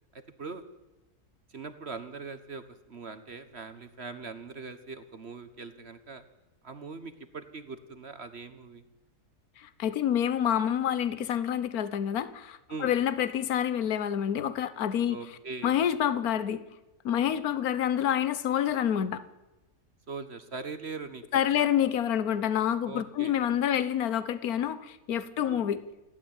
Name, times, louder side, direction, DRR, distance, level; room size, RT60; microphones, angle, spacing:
voice 1, 0.1-0.6 1.5-6.2 6.6-8.8 12.7-12.9 15.1-15.7 20.1-21.7 22.8-23.4 25.4-25.7, right 4 dB, 45° right, 11 dB, 1.5 m, -41 dB
voice 2, 9.6-15.2 15.6-16.6 17.0-19.2 21.3-25.8, left 9 dB, 65° left, 15 dB, 1.5 m, -28 dB
28.5 x 12.5 x 9.0 m, 1.0 s
omnidirectional pair, 1.7 m